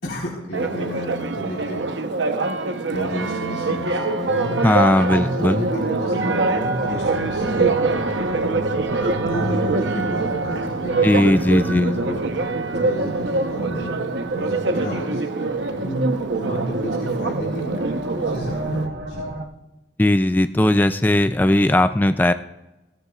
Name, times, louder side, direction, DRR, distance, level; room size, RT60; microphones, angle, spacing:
voice 1, 0.0-1.8 2.9-4.6 5.0-8.1 9.3-12.2 12.7-14.1 14.3-16.1 16.4-19.3, equal, 70° left, -5 dB, 3.9 m, -32 dB
Church bell, 0.5-18.9, right 3 dB, 80° right, 0.9 m, -24 dB
voice 2, 4.6-5.7 11.0-11.9 20.0-22.3, left 1 dB, 10° left, 10 dB, 0.3 m, -18 dB
sound 1, 5.4-19.4, right 1 dB, 60° right, 1.2 m, -32 dB
16.5 x 13.0 x 2.4 m, 1.0 s
head